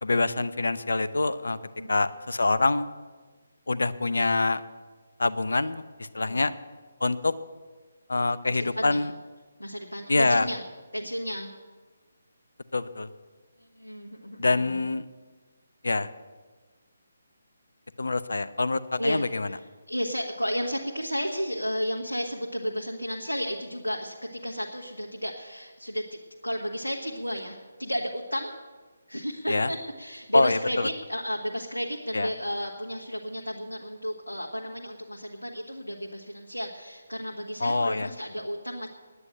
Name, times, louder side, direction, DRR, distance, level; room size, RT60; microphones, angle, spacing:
voice 1, 0.0-1.6 1.9-2.9 3.7-4.6 5.2-5.8 6.1-6.5 7.0-7.3 8.1-9.1 10.1-10.5 12.7-13.1 14.4-15.1 15.8-16.1 18.0-19.5 29.5-29.7 30.3-30.9 32.1-32.3 37.6-38.1, left 3 dB, 70° left, 14 dB, 0.7 m, -25 dB
voice 2, 8.5-9.0 9.6-10.6 10.9-11.5 13.7-14.8 19.0-26.0 26.4-28.5 29.1-38.9, equal, 90° left, -1 dB, 1.6 m, -33 dB
9.8 x 9.6 x 9.0 m, 1.4 s
figure-of-eight pair, 145°, 0 cm